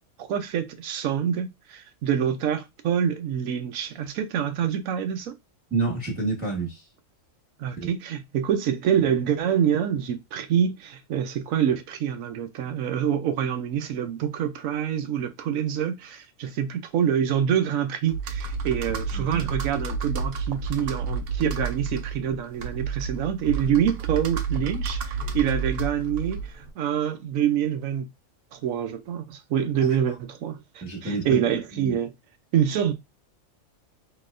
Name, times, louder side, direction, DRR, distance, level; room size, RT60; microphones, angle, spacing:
voice 1, 0.2-5.3 7.6-28.1 28.5-32.1 32.5-32.9, right 9 dB, 85° right, 1.0 m, -26 dB
voice 2, 5.7-6.8 7.8-7.9 19.1-19.5 29.8-29.9 30.8-31.4 31.7-32.0, right 3 dB, 5° right, 1.2 m, -29 dB
Computer keyboard, 18.1-26.7, right 4 dB, 60° right, 0.7 m, -30 dB
4.0 x 2.9 x 2.5 m
omnidirectional pair, 1.4 m